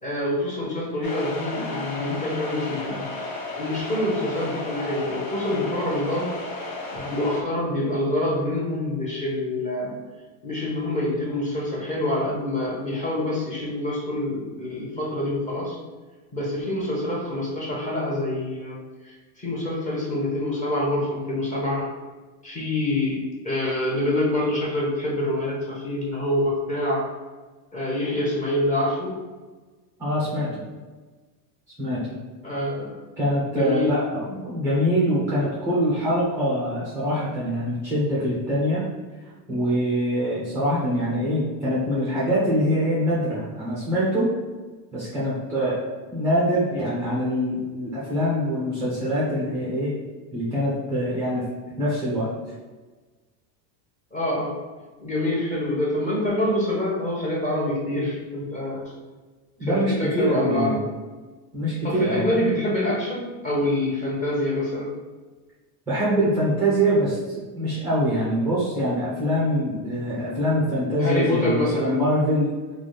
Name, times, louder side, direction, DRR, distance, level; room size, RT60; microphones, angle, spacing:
voice 1, 0.0-3.1 3.6-6.4 6.9-9.9 10.4-15.8 16.3-18.8 19.0-21.9 22.4-23.2 23.4-27.1 27.7-29.2 32.4-33.0 33.5-33.9 54.1-54.6 55.0-58.9 59.6-60.9 61.8-64.9 71.0-72.0, left 1 dB, 15° left, -4 dB, 0.8 m, -26 dB
sound 1, 1.0-7.4, left 2 dB, 70° left, 1.1 m, -33 dB
voice 2, 30.0-30.6 31.8-32.0 33.2-38.8 39.5-44.3 44.9-45.8 46.1-49.9 50.3-51.4 51.8-52.3 59.6-60.8 61.5-62.2 65.9-72.5, equal, 5° right, -7 dB, 0.4 m, -24 dB
3.9 x 2.4 x 3.2 m, 1.3 s
supercardioid pair, 150°, 49 cm